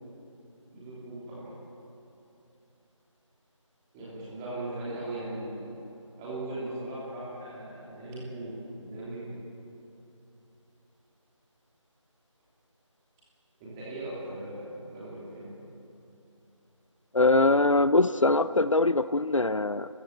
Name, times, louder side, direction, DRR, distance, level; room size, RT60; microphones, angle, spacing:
voice 1, 0.7-1.5 3.9-5.7 6.2-9.4 13.6-15.5, right 1 dB, 5° right, -8 dB, 3.1 m, -38 dB
voice 2, 17.1-19.9, left 2 dB, 70° left, 14 dB, 0.8 m, -22 dB
29.0 x 15.0 x 8.8 m, 2.8 s
figure-of-eight pair, 165°, 17 cm